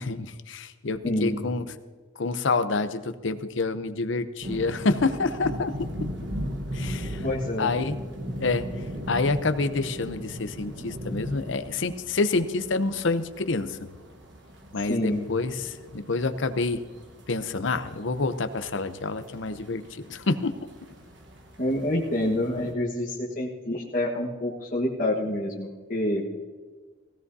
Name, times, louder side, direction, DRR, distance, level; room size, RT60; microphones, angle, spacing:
voice 1, 0.0-1.6 2.2-5.9 6.7-7.2 7.6-8.0 8.4-8.7 9.1-13.8 14.7-16.8 17.3-20.5, left 3 dB, 70° left, 11 dB, 0.7 m, -27 dB
voice 2, 1.0-1.4 7.2-7.8 14.9-15.2 21.6-26.2, left 1 dB, 40° left, -4 dB, 1.4 m, -27 dB
sound 1, 4.4-22.7, equal, 60° right, 1.3 m, -38 dB
16.5 x 16.5 x 2.7 m, 1.4 s
head